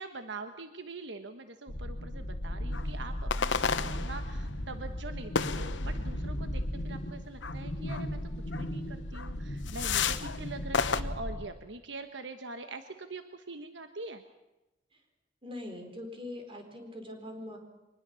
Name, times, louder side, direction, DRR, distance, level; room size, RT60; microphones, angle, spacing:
voice 1, 0.0-8.2 8.5-14.2, right 3 dB, 70° right, 8 dB, 1.2 m, -44 dB
sound 1, 1.7-11.4, equal, 65° left, 2.4 m, -36 dB
sound 2, 2.7-2.9 3.3-4.5 5.3-6.2 7.4-7.6 7.9-8.1 8.5-8.7 9.1-9.3 9.7-10.4 10.7-11.0, left 6 dB, 85° left, 1.0 m, -32 dB
voice 2, 15.4-17.6, left 1 dB, 30° right, 4 dB, 4.4 m, -43 dB
24.0 x 20.0 x 7.0 m, 1.0 s
head